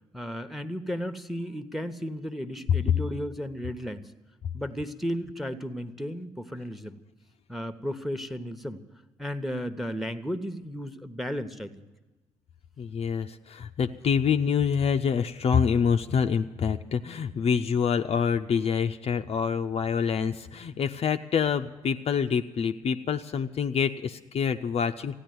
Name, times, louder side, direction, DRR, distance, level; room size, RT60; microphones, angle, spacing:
voice 1, 0.1-4.1 4.5-7.0 7.5-8.8 9.2-11.9, equal, ahead, 10 dB, 1.1 m, -34 dB
voice 2, 12.8-25.2, left 6 dB, 45° left, 6 dB, 0.6 m, -26 dB
14.5 x 10.0 x 9.3 m, 1.2 s
hypercardioid pair, 45°, 14 cm